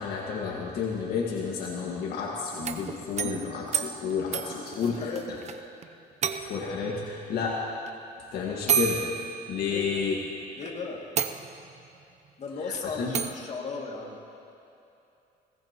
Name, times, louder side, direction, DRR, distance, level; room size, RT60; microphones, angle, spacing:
voice 1, 0.0-5.0 6.3-7.6 8.3-9.0 9.5-10.2 13.0-13.2, left 6 dB, 70° left, -2 dB, 1.8 m, -31 dB
sound 1, 2.5-5.6 5.8-5.9 6.2-6.8 7.9-8.0 8.7-10.1 10.6-10.7 11.2-11.9 13.1-13.5, right 7 dB, 40° right, 0.7 m, -31 dB
voice 2, 4.6-5.4 9.6-10.1 10.6-11.1 12.4-14.2, left 4 dB, 45° left, -1 dB, 2.4 m, -36 dB
21.5 x 18.0 x 3.0 m, 2.7 s
cardioid pair, 110°, 17 cm